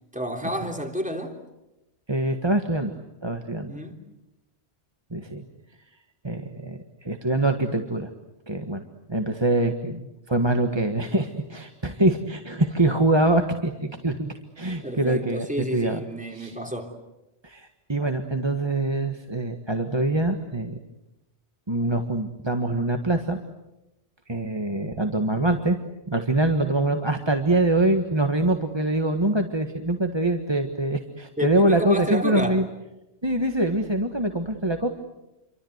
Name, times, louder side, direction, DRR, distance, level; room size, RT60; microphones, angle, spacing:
voice 1, 0.1-1.4 3.7-4.0 14.8-16.9 31.4-32.5, equal, 5° right, 3.4 m, -30 dB
voice 2, 2.1-2.9 3.2-3.7 5.1-5.4 6.2-8.1 8.5-8.8 9.1-15.5 15.7-16.0 16.3-16.6 17.4-20.8 21.7-23.4 24.3-25.8 26.1-32.7 33.2-34.9, right 2 dB, 25° right, 1.6 m, -24 dB
29.0 x 24.5 x 8.1 m
omnidirectional pair, 1.1 m